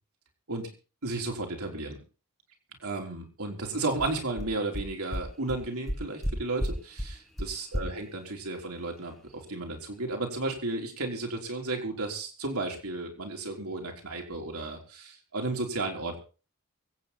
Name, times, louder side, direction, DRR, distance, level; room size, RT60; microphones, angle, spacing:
voice 1, 1.0-2.0 2.8-16.2, right 2 dB, 80° right, 1 dB, 3.7 m, -33 dB
sound 1, 4.0-4.1 4.4-4.5 4.7-4.8 5.1-5.2 5.5-5.6 5.9-6.3 6.6-6.7 7.0-7.1 7.4-7.5 7.7-7.8, equal, ahead, 2.7 m, -30 dB
23.5 x 8.7 x 4.3 m, 0.36 s
head